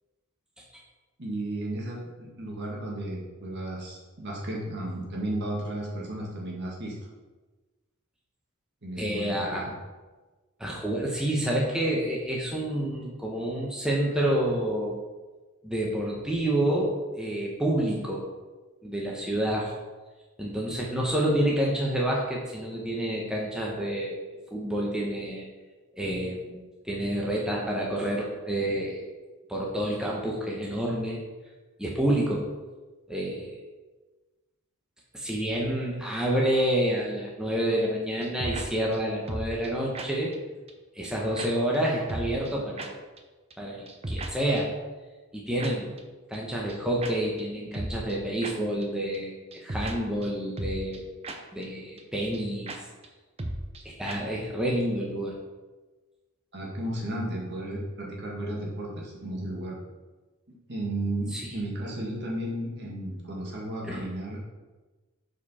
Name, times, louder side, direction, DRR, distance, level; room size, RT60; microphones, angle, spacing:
voice 1, 1.2-6.9 8.8-9.7 56.5-59.8 60.7-64.4, right 1 dB, 50° right, -3 dB, 1.8 m, -34 dB
voice 2, 9.0-9.6 10.6-14.9 15.6-18.3 18.8-19.7 20.4-24.2 24.5-25.4 26.0-29.0 29.5-31.2 31.8-32.5 33.1-33.5 35.1-40.3 40.9-42.9 43.6-44.7 45.3-45.9 46.3-51.0 51.5-52.8 54.0-55.3 61.3-61.5 63.8-64.0, right 1 dB, 5° right, -3 dB, 0.9 m, -28 dB
sound 1, 38.2-38.7 38.9-39.0 39.3-39.7 39.9-40.1 40.3-40.4 40.7-40.8 41.0-41.1 41.4-41.5 41.7-41.8 42.1-42.5 42.8-42.9 43.2-43.3 43.5-43.6 43.9-44.3 44.6-44.7 45.6-45.7 46.0-46.1 46.3-46.4 46.7-46.8 47.0-47.1 47.4-47.5 47.7-48.2 48.4-48.5 48.8-48.9 49.1-49.2 49.5-50.0 50.2-50.3 50.6-51.0 51.2-51.4 51.6-51.7 52.0-52.1 52.3-52.4 52.7-52.8 53.0-53.1 53.4-53.8 54.1-54.2, right 1 dB, 30° right, 0.6 m, -34 dB
6.8 x 5.0 x 4.2 m, 1.2 s
head